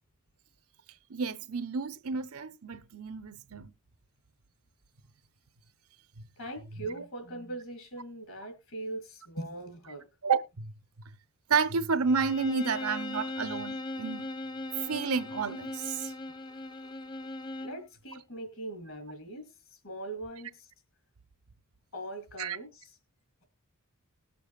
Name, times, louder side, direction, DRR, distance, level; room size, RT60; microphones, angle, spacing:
voice 1, 1.1-3.7 10.2-10.7 11.5-14.3 14.9-16.1 22.4-22.6, right 5 dB, 85° right, 0.7 m, -30 dB
voice 2, 6.4-10.1 17.6-20.7 21.9-23.0, right 1 dB, 65° left, 2.5 m, -41 dB
Bowed string instrument, 12.1-17.8, left 2 dB, 20° left, 0.5 m, -39 dB
19.5 x 7.0 x 2.4 m
head